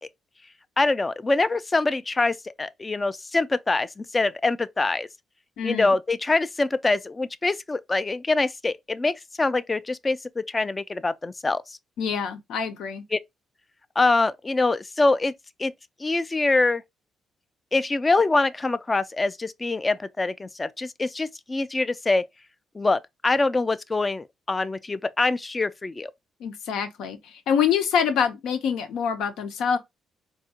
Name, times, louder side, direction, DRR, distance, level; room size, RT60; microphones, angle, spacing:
voice 1, 0.8-5.1 5.6-11.8 13.1-13.2 14.0-15.3 15.6-15.7 16.0-16.8 17.7-22.2 22.7-26.1, left 3 dB, 25° left, 0.3 m, -24 dB
voice 2, 5.6-5.9 12.0-13.0 26.4-29.8, left 7 dB, 80° left, 0.7 m, -25 dB
3.5 x 2.3 x 2.8 m
cardioid pair, 90°, 0 cm